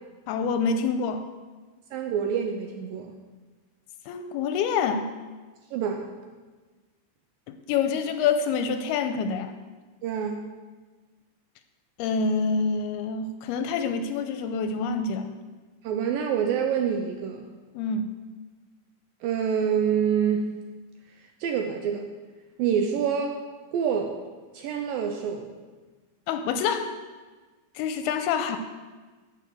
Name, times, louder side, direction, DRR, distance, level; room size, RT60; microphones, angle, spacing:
voice 1, 0.3-1.2 4.1-5.0 7.5-9.5 12.0-15.3 17.7-18.1 26.3-26.9 27.8-28.6, left 5 dB, 80° left, 8 dB, 2.5 m, -26 dB
voice 2, 1.9-3.1 5.7-6.1 10.0-10.4 15.8-17.5 19.2-20.5 21.4-22.1 22.6-23.4 23.7-24.1 24.5-25.6, right 7 dB, 75° right, 4 dB, 2.1 m, -26 dB
11.5 x 7.1 x 7.8 m, 1.3 s
omnidirectional pair, 4.8 m